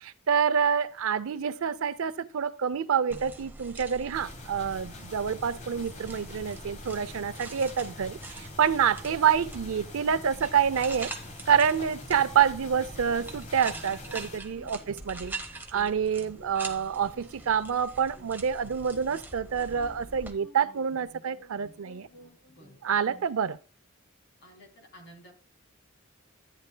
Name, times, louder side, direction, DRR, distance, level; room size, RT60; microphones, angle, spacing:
voice 1, 0.0-11.1 11.5-15.3 15.7-22.1 22.8-23.6, right 7 dB, 75° right, 0.5 m, -27 dB
sound 1, 3.1-20.3, right 2 dB, 10° right, 0.9 m, -44 dB
sound 2, 4.1-14.4, left 2 dB, 35° left, 1.1 m, -45 dB
sound 3, 13.6-23.3, right 1 dB, 10° left, 4.2 m, -54 dB
voice 2, 14.6-15.0 22.5-22.8 24.4-25.3, equal, 55° left, 3.0 m, -53 dB
13.5 x 9.3 x 2.2 m
head